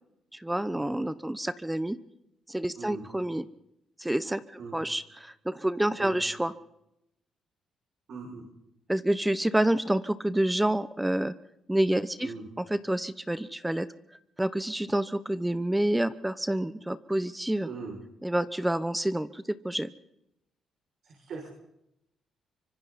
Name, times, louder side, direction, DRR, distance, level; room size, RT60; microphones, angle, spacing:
voice 1, 0.3-2.0 2.5-3.5 4.0-6.5 8.9-11.3 11.7-12.3 12.6-13.9 14.4-17.7 18.2-19.9, right 1 dB, 10° right, 15 dB, 0.9 m, -28 dB
voice 2, 8.1-8.4 12.2-12.4 17.6-17.9 21.0-21.5, right 5 dB, 65° right, -1 dB, 6.5 m, -40 dB
26.0 x 24.5 x 4.2 m, 0.83 s
cardioid pair, 90°, 0 cm